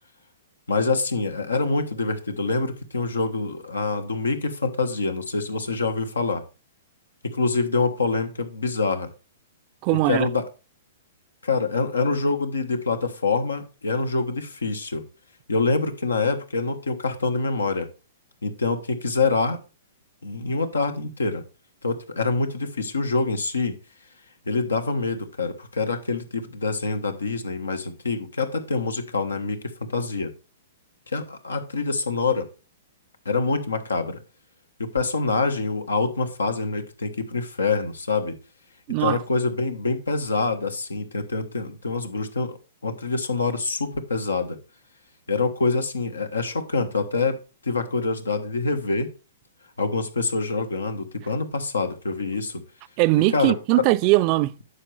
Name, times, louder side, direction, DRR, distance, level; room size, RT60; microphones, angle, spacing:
voice 1, 0.7-6.4 7.2-9.1 10.1-10.4 11.4-15.0 15.5-17.9 18.4-19.6 20.2-21.4 21.8-23.7 24.5-29.6 29.9-30.3 31.1-32.5 33.2-34.2 34.8-38.3 39.0-42.6 42.8-44.6 45.3-47.4 47.6-49.1 49.8-52.6 53.3-53.5, left 3 dB, 90° left, 1.2 m, -25 dB
voice 2, 9.8-10.3 38.9-39.2 53.0-54.6, right 19 dB, 40° right, 0.5 m, -20 dB
9.7 x 6.5 x 3.3 m
hypercardioid pair, 120°, 0 cm